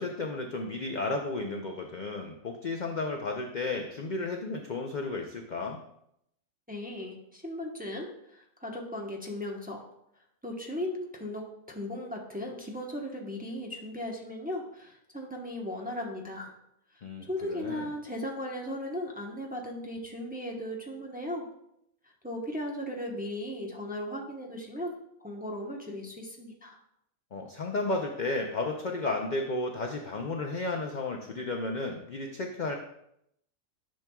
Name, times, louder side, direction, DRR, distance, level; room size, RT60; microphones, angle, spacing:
voice 1, 0.0-5.8 17.0-17.9 27.3-32.8, left 2 dB, 50° left, 3 dB, 0.5 m, -33 dB
voice 2, 6.7-9.9 10.4-16.5 17.2-21.4 22.2-24.9 25.2-26.8, left 1 dB, 10° right, -1 dB, 0.8 m, -37 dB
10.5 x 6.0 x 2.3 m, 0.77 s
omnidirectional pair, 1.4 m